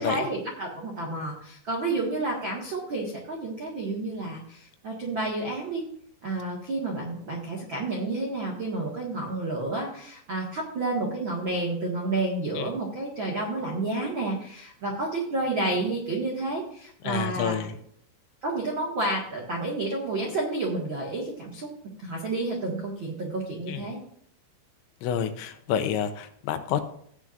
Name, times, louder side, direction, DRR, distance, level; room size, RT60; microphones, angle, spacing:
voice 1, 0.0-5.8 6.2-17.7 18.4-21.7 22.0-24.0, right 2 dB, 80° right, -2 dB, 1.1 m, -30 dB
voice 2, 17.0-17.7 23.7-23.8 25.0-26.8, left 9 dB, 80° left, 9 dB, 3.2 m, -28 dB
16.5 x 9.3 x 2.6 m, 0.65 s
omnidirectional pair, 5.3 m